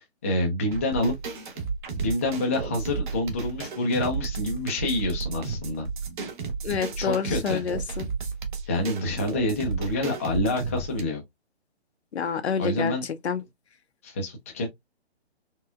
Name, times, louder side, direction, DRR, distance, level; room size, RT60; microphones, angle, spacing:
voice 1, 0.2-1.2 1.9-5.9 7.0-7.6 8.7-11.2 12.6-13.0 14.0-14.7, left 2 dB, 15° left, 0.4 m, -27 dB
sound 1, 0.7-11.0, right 5 dB, 45° right, 1.0 m, -33 dB
voice 2, 6.6-8.1 12.1-13.4, left 6 dB, 80° left, 0.8 m, -28 dB
4.4 x 2.3 x 2.2 m
hypercardioid pair, 155°, 33 cm